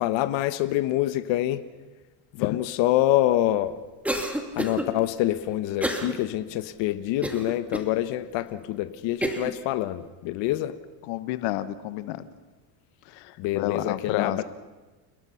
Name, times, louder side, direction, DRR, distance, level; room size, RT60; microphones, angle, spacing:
voice 1, 0.0-1.6 2.3-3.8 4.6-10.8 13.4-14.4, left 14 dB, 65° left, 11 dB, 1.3 m, -26 dB
Cough, 4.0-4.9 5.8-6.1 6.6-6.7 7.2-7.9 8.5-8.6 9.2-9.5, right 1 dB, 5° right, 2.3 m, -28 dB
voice 2, 11.1-12.3 13.1-14.4, left 15 dB, 90° left, 13 dB, 1.4 m, -30 dB
29.5 x 19.0 x 5.8 m, 1.2 s
cardioid pair, 145°, 47 cm